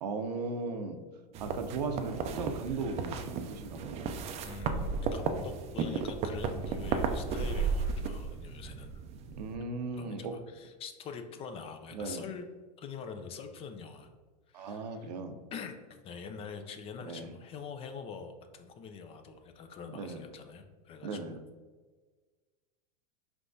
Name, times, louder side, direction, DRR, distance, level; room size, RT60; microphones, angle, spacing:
voice 1, 0.0-1.0 1.4-4.1 9.4-10.3 11.9-12.2 14.5-15.4 17.0-17.3 19.9-20.2 21.0-21.4, right 4 dB, 85° right, 7 dB, 0.6 m, -37 dB
sound 1, 1.3-9.5, right 5 dB, 30° right, 0.4 m, -34 dB
voice 2, 4.4-9.0 9.9-12.4 12.8-14.1 14.5-15.0 15.5-21.4, left 6 dB, 30° left, 7 dB, 0.4 m, -44 dB
4.6 x 3.4 x 2.6 m, 1.4 s
supercardioid pair, 130°, 20 cm